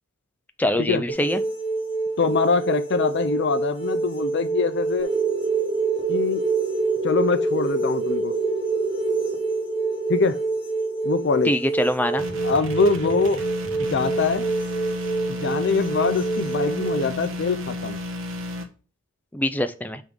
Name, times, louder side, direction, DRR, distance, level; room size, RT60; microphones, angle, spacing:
voice 1, 0.6-1.4 11.5-12.2 19.3-20.0, left 1 dB, 10° left, 10 dB, 0.4 m, -23 dB
sound 1, 1.1-17.0, right 3 dB, 30° left, 2.2 m, -27 dB
voice 2, 2.2-5.1 6.1-6.4 7.0-8.3 10.1-10.4 11.0-11.5 12.4-13.4 13.8-14.4 15.3-18.0, left 4 dB, 55° left, 11 dB, 0.5 m, -23 dB
sound 2, 5.0-13.3, right 3 dB, 25° right, 1.4 m, -29 dB
sound 3, 12.2-18.6, left 1 dB, 70° right, 1.2 m, -33 dB
6.2 x 3.6 x 5.1 m, 0.38 s
head